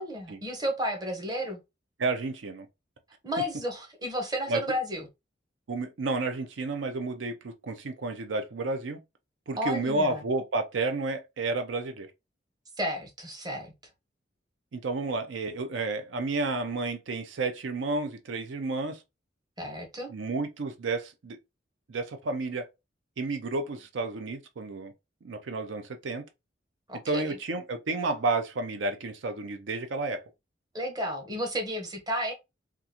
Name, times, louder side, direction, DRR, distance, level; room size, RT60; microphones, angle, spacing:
voice 1, 0.0-1.6 3.2-5.1 9.6-10.2 12.8-13.7 19.6-20.1 26.9-27.4 30.7-32.3, equal, 20° right, 0.8 m, -32 dB
voice 2, 2.0-2.7 4.5-4.6 5.7-9.0 9.5-12.1 14.7-19.0 20.1-21.4 21.9-22.7 23.2-24.9 25.2-26.2 27.1-30.2, right 3 dB, 85° right, 0.5 m, -31 dB
3.6 x 2.4 x 2.8 m
head